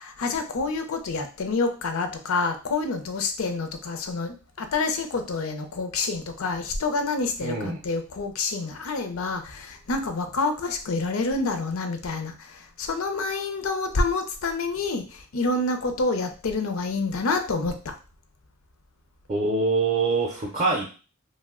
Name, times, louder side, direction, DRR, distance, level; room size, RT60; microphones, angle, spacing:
voice 1, 0.2-12.5 12.8-15.0 15.3-17.9, left 3 dB, 70° left, 6 dB, 0.5 m, -27 dB
voice 2, 7.4-7.8 19.3-20.9, right 3 dB, 30° right, -1 dB, 0.5 m, -24 dB
2.7 x 2.1 x 3.5 m, 0.35 s
head